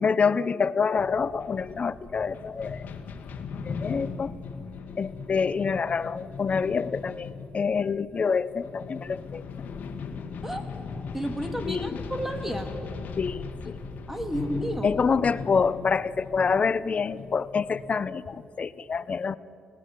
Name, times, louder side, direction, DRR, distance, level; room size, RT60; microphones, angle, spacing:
voice 1, 0.0-2.9 3.6-4.3 5.0-9.4 9.9-10.0 11.7-12.0 13.2-13.8 14.8-19.4, left 5 dB, 45° left, 18 dB, 0.8 m, -27 dB
sound 1, 1.0-18.5, left 5 dB, 70° left, 1.7 m, -38 dB
voice 2, 11.1-12.7 14.1-14.9, right 1 dB, 10° right, 6 dB, 3.2 m, -31 dB
19.5 x 16.5 x 8.6 m, 2.7 s
supercardioid pair, 55°, 3 cm